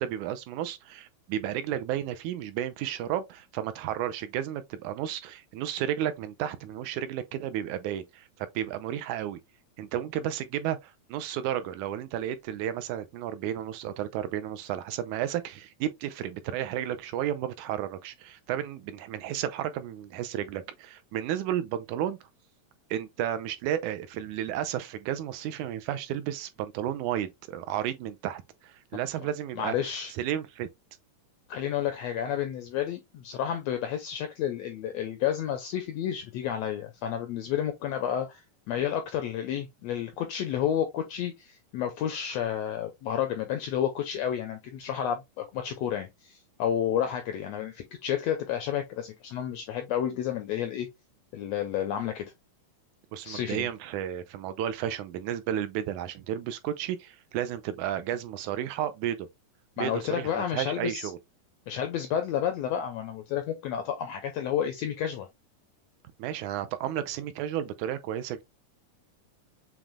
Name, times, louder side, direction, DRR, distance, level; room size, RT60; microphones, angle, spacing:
voice 1, 0.0-9.4 9.8-22.2 22.9-29.7 30.2-30.7 53.1-59.3 59.8-61.2 66.2-68.4, right 11 dB, 80° right, 1.9 m, -32 dB
voice 2, 29.6-30.1 31.5-50.9 51.3-52.2 53.2-53.7 59.8-61.1 61.7-65.3, left 9 dB, 85° left, 1.5 m, -31 dB
7.2 x 3.1 x 2.2 m
omnidirectional pair, 3.6 m